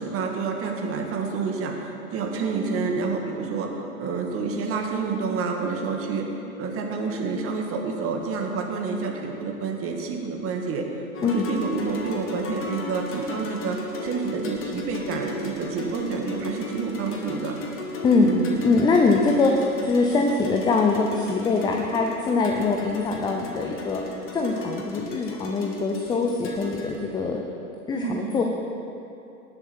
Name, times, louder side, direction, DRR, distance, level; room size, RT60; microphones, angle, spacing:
voice 1, 0.0-1.7 2.1-3.7 4.0-6.3 6.6-10.8 11.2-17.6 18.2-18.5 27.9-28.3, right 4 dB, 30° right, 2 dB, 1.7 m, -28 dB
sound 1, 11.1-27.0, left 3 dB, 30° left, 1.6 m, -36 dB
voice 2, 18.6-24.0 24.3-27.4 27.9-28.4, left 3 dB, 10° left, 1 dB, 0.5 m, -23 dB
18.0 x 7.0 x 4.3 m, 2.7 s
hypercardioid pair, 100°, 43 cm